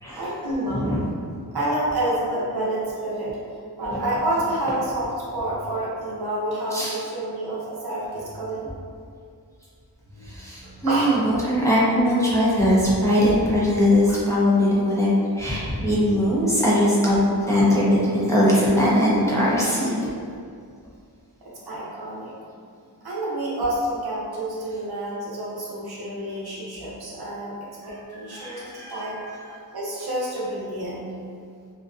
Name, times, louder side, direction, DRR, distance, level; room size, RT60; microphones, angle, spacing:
voice 1, 0.2-0.9 1.5-3.4 3.8-8.7 10.1-11.3 21.4-22.3 23.0-27.5 27.9-29.2 29.7-31.0, right 1 dB, 70° right, -7 dB, 0.7 m, -28 dB
voice 2, 10.3-17.2 17.5-20.0 28.3-29.5, equal, 10° left, -8 dB, 0.5 m, -21 dB
2.5 x 2.2 x 2.4 m, 2.3 s
wide cardioid pair, 70°, 39 cm